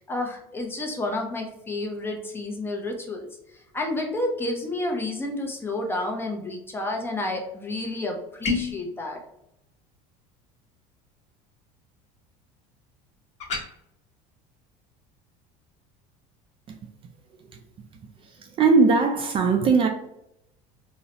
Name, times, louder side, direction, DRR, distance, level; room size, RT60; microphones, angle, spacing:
voice 1, 0.0-3.3 3.7-9.2, left 2 dB, 15° left, 0.6 m, -30 dB
sound 1, 8.4-8.8 13.4-13.7, left 4 dB, 45° left, 1.1 m, -27 dB
voice 2, 18.2-19.9, right 4 dB, 35° right, 0.4 m, -20 dB
3.9 x 2.1 x 2.8 m
cardioid pair, 130°, 16 cm